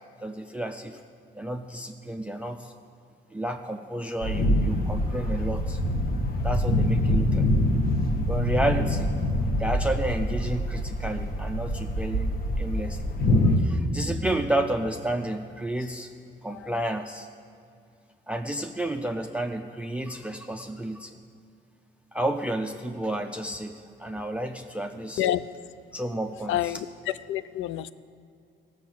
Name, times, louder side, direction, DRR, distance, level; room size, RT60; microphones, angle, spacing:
voice 1, 0.2-1.0 1.3-2.7 3.3-5.8 6.4-7.5 8.3-9.1 9.4-13.0 13.6-16.1 16.4-17.3 18.3-21.2 22.1-25.3 25.9-26.8, right 1 dB, 5° right, 5 dB, 0.5 m, -31 dB
sound 1, 4.2-13.6, left 1 dB, 45° left, 1.2 m, -25 dB
voice 2, 26.5-26.8 27.3-27.9, left 12 dB, 80° left, 16 dB, 0.5 m, -27 dB
15.0 x 6.3 x 7.4 m, 2.4 s
cardioid pair, 90°, 20 cm